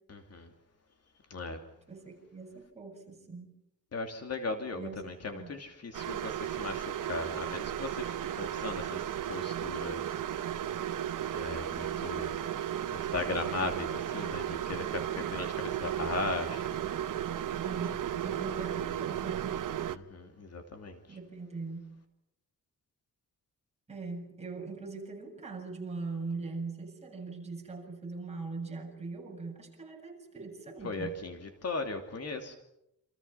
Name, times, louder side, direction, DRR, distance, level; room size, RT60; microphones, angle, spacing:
voice 1, 0.1-0.5 1.3-1.6 3.9-10.2 11.3-12.4 12.9-16.8 19.9-21.0 30.8-32.6, left 3 dB, 50° left, 5 dB, 3.0 m, -37 dB
voice 2, 1.9-3.5 4.7-5.0 5.3-5.5 17.6-19.6 21.1-22.0 23.9-31.1, right 4 dB, 20° right, 0 dB, 7.7 m, -41 dB
sound 1, 5.9-20.0, right 10 dB, 70° right, 1.1 m, -35 dB
29.0 x 27.5 x 5.9 m, 0.80 s
wide cardioid pair, 175°, 33 cm